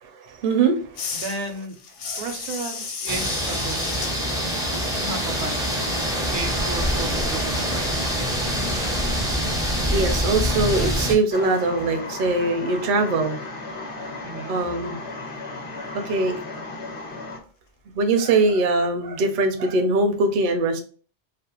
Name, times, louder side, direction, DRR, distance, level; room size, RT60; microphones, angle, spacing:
voice 1, 0.0-1.1 2.1-2.2 4.2-4.3 4.6-4.9 9.9-13.4 14.0-14.1 14.5-15.0 15.8-16.4 17.9-20.8, right 3 dB, 60° right, 5 dB, 0.6 m, -22 dB
sound 1, 0.9-6.5 6.8-11.6, left 5 dB, 70° left, 0.8 m, -37 dB
voice 2, 1.1-1.8 2.2-4.1 5.0-5.9 6.3-8.1 14.2-14.5, right 3 dB, 85° right, 5 dB, 0.9 m, -34 dB
sound 2, 3.1-11.2, equal, 5° right, 0.4 m, -25 dB
sound 3, 11.3-17.4, left 3 dB, 35° left, 0.6 m, -35 dB
2.4 x 2.1 x 2.8 m, 0.40 s
omnidirectional pair, 1.1 m